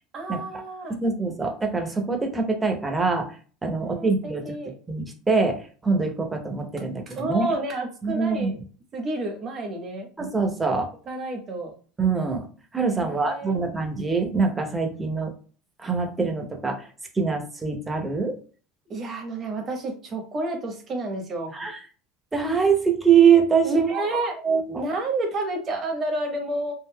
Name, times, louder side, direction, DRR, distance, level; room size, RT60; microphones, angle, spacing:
voice 1, 0.1-1.0 3.7-4.7 7.1-8.5 8.9-10.1 11.1-11.7 12.9-13.9 18.9-21.5 23.6-24.4 24.7-26.7, right 2 dB, 40° right, 3 dB, 1.0 m, -30 dB
voice 2, 1.0-3.3 3.6-4.6 4.9-7.5 8.0-8.5 10.2-10.9 12.0-12.5 12.7-15.3 15.8-16.9 17.1-18.3 21.5-21.8 22.3-24.0 24.4-24.8, right 5 dB, 20° right, 4 dB, 0.8 m, -23 dB
3.6 x 2.5 x 2.2 m, 0.40 s
supercardioid pair, 95°, 0 cm